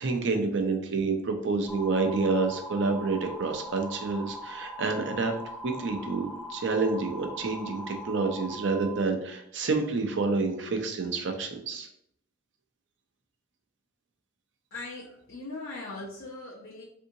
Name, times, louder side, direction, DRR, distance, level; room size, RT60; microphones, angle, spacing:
voice 1, 0.0-5.4 5.6-11.9, right 3 dB, 60° right, 4 dB, 0.5 m, -28 dB
sound 1, 1.7-9.0, right 1 dB, 5° left, 0.4 m, -41 dB
voice 2, 14.7-16.8, left 2 dB, 60° left, -7 dB, 0.7 m, -40 dB
3.7 x 2.7 x 2.6 m, 0.73 s
head